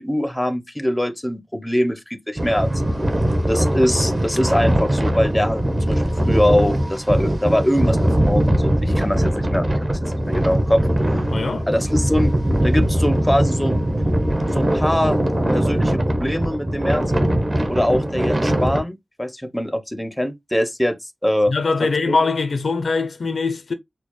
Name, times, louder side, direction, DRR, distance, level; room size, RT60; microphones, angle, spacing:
voice 1, 0.0-2.7 3.5-8.0 8.3-10.8 11.1-11.2 11.7-12.3 12.6-15.2 15.5-17.0 17.7-21.0 21.2-21.5 21.8-22.2, equal, 10° left, 0.5 m, -23 dB
sound 1, 2.4-18.8, right 1 dB, 35° right, 0.8 m, -20 dB
voice 2, 11.3-11.7 14.3-14.5 21.5-23.7, left 4 dB, 70° left, 0.5 m, -22 dB
4.4 x 2.0 x 3.0 m
wide cardioid pair, 80°, 0 cm